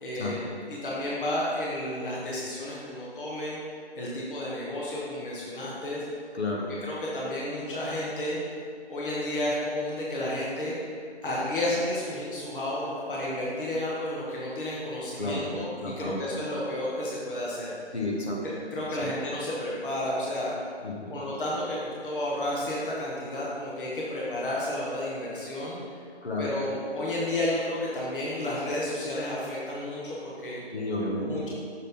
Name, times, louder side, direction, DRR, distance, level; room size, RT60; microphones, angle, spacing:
voice 1, 0.0-3.6 4.0-6.0 6.5-6.6 6.9-8.4 8.9-10.7 11.2-17.8 18.7-20.5 21.1-25.8 26.4-30.6 31.3-31.5, left 1 dB, 50° left, -6 dB, 1.3 m, -31 dB
voice 2, 6.3-6.7 15.2-15.4 15.8-16.2 17.9-18.4 19.0-19.1 20.8-21.2 26.2-26.5 30.7-31.5, left 2 dB, 70° left, -2 dB, 1.6 m, -31 dB
6.5 x 3.9 x 5.2 m, 2.4 s
figure-of-eight pair, 160°, 33 cm